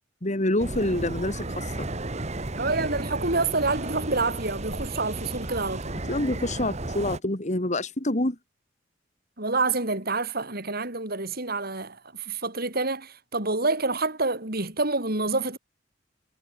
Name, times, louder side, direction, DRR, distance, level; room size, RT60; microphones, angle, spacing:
voice 1, 0.2-1.9 6.1-8.4, left 1 dB, 40° left, 2.8 m, -27 dB
sound 1, 0.6-7.2, right 2 dB, 35° right, 1.7 m, -33 dB
voice 2, 2.6-6.1 9.4-15.6, right 3 dB, 55° right, 5.3 m, -27 dB
head